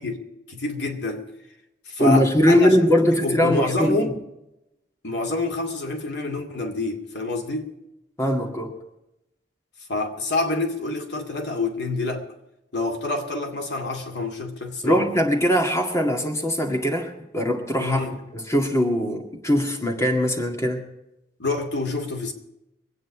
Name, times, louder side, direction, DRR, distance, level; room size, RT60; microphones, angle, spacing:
voice 1, 0.5-1.3 1.9-2.8 3.1-4.2 5.0-7.7 9.9-12.2 12.7-15.0 17.8-18.2 21.4-22.3, left 2 dB, 75° left, 2.3 m, -27 dB
voice 2, 2.0-4.1 8.2-8.7 14.8-18.0 18.3-20.8, equal, 15° left, 2.0 m, -21 dB
24.0 x 9.3 x 4.7 m
head